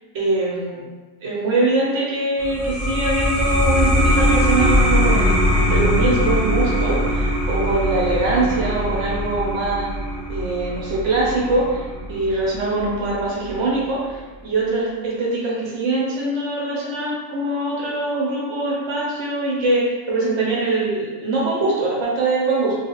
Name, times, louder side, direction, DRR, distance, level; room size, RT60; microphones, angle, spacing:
voice 1, 0.1-0.8 1.2-9.9 10.3-11.8 12.1-22.8, right 2 dB, 60° right, -5 dB, 0.9 m, -22 dB
sound 1, 2.4-13.6, equal, 25° right, 0.4 m, -21 dB
2.4 x 2.3 x 2.9 m, 1.3 s
omnidirectional pair, 1.6 m